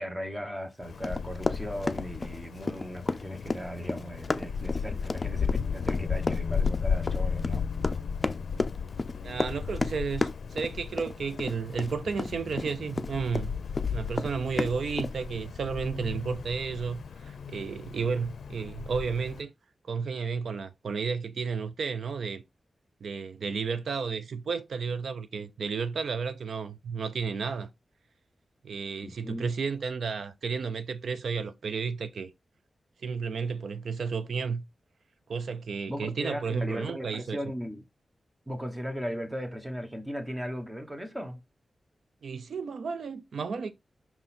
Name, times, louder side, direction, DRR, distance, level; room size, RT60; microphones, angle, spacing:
voice 1, 0.0-7.6 29.0-29.5 35.9-37.8 38.5-41.4, equal, 10° right, 1.0 m, -37 dB
Wind, 0.8-19.4, left 6 dB, 85° left, 0.4 m, -35 dB
Run, 1.0-13.5 13.7-15.1, left 3 dB, 30° left, 0.4 m, -32 dB
voice 2, 9.2-13.5 13.9-19.5 19.8-22.4 23.0-27.7 28.6-32.3 33.0-34.6 35.3-37.4 42.2-43.7, right 5 dB, 80° right, 0.5 m, -32 dB
5.8 x 3.8 x 4.2 m
wide cardioid pair, 150°, 0 cm